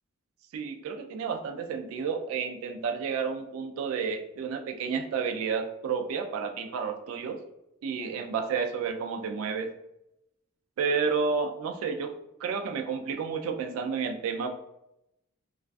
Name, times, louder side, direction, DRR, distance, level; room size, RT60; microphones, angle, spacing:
voice 1, 0.5-7.4 7.8-9.7 10.8-12.1 12.4-14.5, right 5 dB, 85° right, 9 dB, 0.3 m, -31 dB
2.4 x 2.2 x 2.4 m, 0.86 s
head